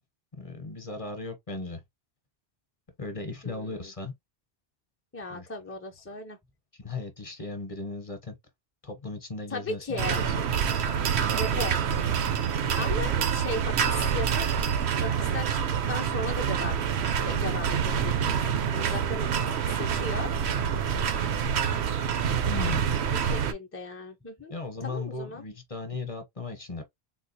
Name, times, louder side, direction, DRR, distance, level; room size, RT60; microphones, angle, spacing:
voice 1, 0.3-1.8 3.0-4.1 5.3-5.5 6.7-8.4 8.8-10.3 22.5-22.9 24.5-26.8, left 3 dB, 35° left, 0.9 m, -36 dB
voice 2, 3.4-3.9 5.1-6.4 9.5-10.2 11.4-11.8 12.8-14.5 15.0-15.6 15.9-16.9 17.2-20.3 23.1-24.5 24.8-25.4, left 2 dB, 20° left, 0.4 m, -36 dB
sound 1, 10.0-23.5, right 7 dB, 85° right, 0.9 m, -27 dB
3.9 x 2.3 x 2.7 m
omnidirectional pair, 1.1 m